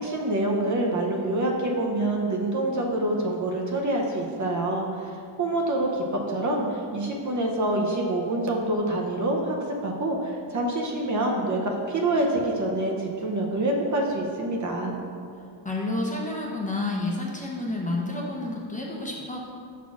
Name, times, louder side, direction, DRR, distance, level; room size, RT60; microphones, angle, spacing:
voice 1, 0.0-4.9 5.4-9.6 9.8-15.0, right 1 dB, 35° right, 0 dB, 0.7 m, -26 dB
voice 2, 15.6-19.4, left 2 dB, 15° left, -3 dB, 0.7 m, -30 dB
5.9 x 4.2 x 6.0 m, 2.4 s
wide cardioid pair, 175°, 49 cm